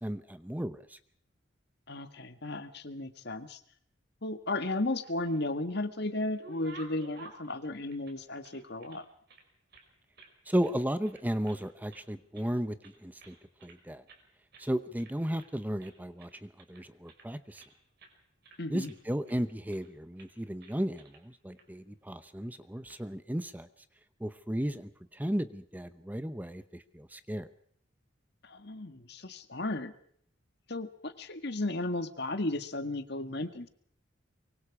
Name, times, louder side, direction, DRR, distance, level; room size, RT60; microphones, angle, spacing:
voice 1, 0.0-1.0 10.5-12.7 13.0-13.3 13.6-14.0 14.6-17.6 18.7-23.7 24.2-27.5, equal, 10° right, 11 dB, 0.8 m, -34 dB
voice 2, 1.9-3.6 4.2-9.1 18.6-18.9 28.4-29.9 30.7-33.7, left 2 dB, 55° left, 9 dB, 1.8 m, -34 dB
sound 1, 4.9-5.7 6.1-9.0 9.3-10.3 10.6-10.8 11.0-11.6 11.9-12.5 12.8-13.8 14.1-14.3 14.5-14.7 14.9-15.5 15.8-17.7 18.0-18.2 18.4-19.4 19.7-19.9 20.2-20.3 20.6-21.2 21.6-21.7 22.6-23.0, right 3 dB, 55° right, 5.2 m, -54 dB
24.5 x 23.5 x 4.8 m, 0.64 s
head